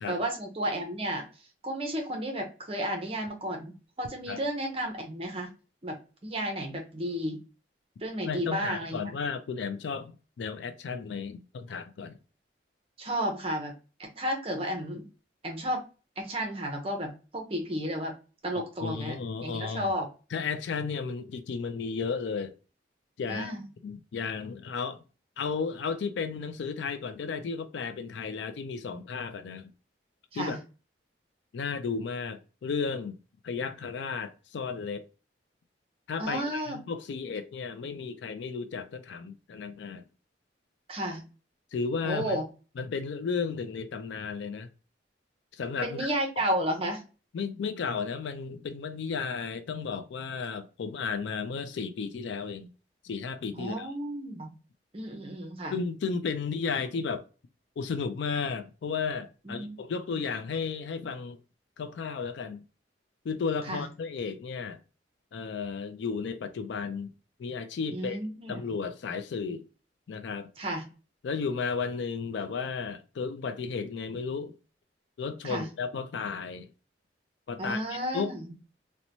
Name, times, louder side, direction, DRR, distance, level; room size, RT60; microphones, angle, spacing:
voice 1, 0.1-1.3 1.6-3.7 4.0-5.5 5.8-5.9 6.2-7.4 8.0-9.0 13.0-13.7 14.2-15.0 15.4-15.8 16.2-18.1 18.4-19.2 19.4-20.1 23.3-23.7 30.3-30.6 36.2-36.8 40.9-41.2 42.0-42.4 45.8-47.0 53.6-54.5 54.9-55.7 59.4-59.8 60.1-60.2 63.7-63.8 67.9-68.6 70.6-70.8 75.4-75.7 77.6-78.5, equal, 30° right, 0.6 m, -32 dB
voice 2, 8.2-12.2 18.8-19.9 20.3-22.5 23.2-23.5 23.8-25.0 25.4-29.7 30.3-30.6 31.5-33.2 33.4-35.1 36.1-40.0 41.7-42.4 42.8-44.7 45.5-46.1 47.3-52.7 53.0-53.9 55.7-57.3 57.8-61.4 61.8-62.6 63.2-64.8 65.3-67.1 67.4-68.2 68.5-69.7 70.1-70.5 71.2-74.6 75.2-76.7 77.5-78.3, left 5 dB, 70° left, 0.3 m, -34 dB
2.9 x 2.1 x 2.6 m
head